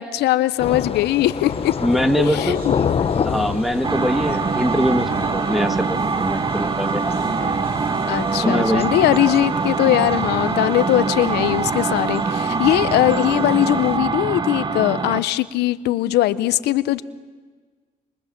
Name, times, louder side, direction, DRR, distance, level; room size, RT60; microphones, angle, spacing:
voice 1, 0.0-1.7 2.2-2.9 8.1-17.0, left 14 dB, 80° left, 14 dB, 0.9 m, -20 dB
Thunder / Rain, 0.6-14.0, left 7 dB, 35° left, 1.0 m, -30 dB
sound 1, 1.5-8.4, right 2 dB, 60° right, 5.9 m, -39 dB
voice 2, 1.8-2.6 3.2-7.2 8.4-8.9, equal, ahead, 10 dB, 1.5 m, -23 dB
sound 2, 3.8-15.3, right 4 dB, 25° right, 1.1 m, -23 dB
29.0 x 25.5 x 7.5 m, 1.5 s
cardioid pair, 110°, 17 cm